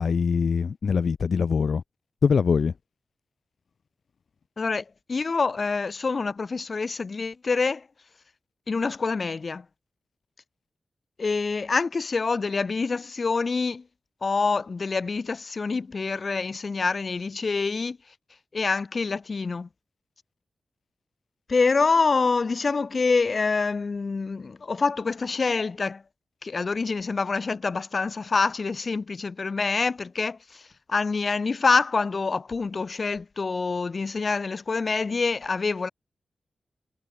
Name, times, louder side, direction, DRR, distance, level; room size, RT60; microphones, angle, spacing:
voice 1, 0.0-1.8 2.2-2.7, left 5 dB, 65° left, 1.1 m, -23 dB
voice 2, 4.6-7.8 8.7-9.6 11.2-13.8 14.2-18.0 18.5-19.7 21.5-26.0 26.4-30.4 30.9-35.9, left 4 dB, 40° left, 2.1 m, -26 dB
wide cardioid pair, 170°, 0 cm